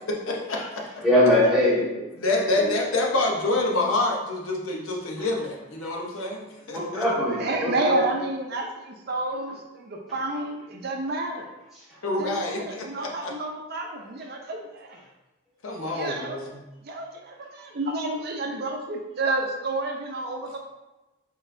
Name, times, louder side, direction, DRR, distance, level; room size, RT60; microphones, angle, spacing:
voice 1, 0.0-0.9 1.8-1.9 2.2-7.0 12.0-13.3 15.6-16.6, left 2 dB, 75° left, 0 dB, 0.7 m, -27 dB
voice 2, 1.0-1.8 2.5-2.7 5.2-5.3 6.7-8.0, left 1 dB, ahead, -9 dB, 1.5 m, -21 dB
voice 3, 7.4-11.5 12.1-15.0 15.9-16.4 16.8-20.6, right 2 dB, 50° right, 1 dB, 0.5 m, -30 dB
4.0 x 3.9 x 2.6 m, 1.0 s
head